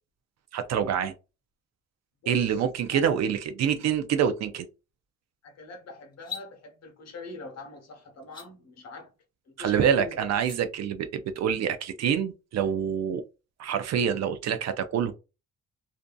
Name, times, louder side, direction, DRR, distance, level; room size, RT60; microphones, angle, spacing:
voice 1, 0.5-1.1 2.3-4.7 9.6-13.2 13.6-15.1, right 8 dB, 60° right, 0.5 m, -26 dB
voice 2, 2.2-2.6 2.9-3.0 5.4-9.1 9.6-10.3, left 3 dB, 60° left, 0.9 m, -42 dB
sound 1, 6.1-6.5 8.2-8.5 10.3-10.6, left 7 dB, 15° left, 1.0 m, -39 dB
2.6 x 2.4 x 2.2 m
cardioid pair, 90°, 30 cm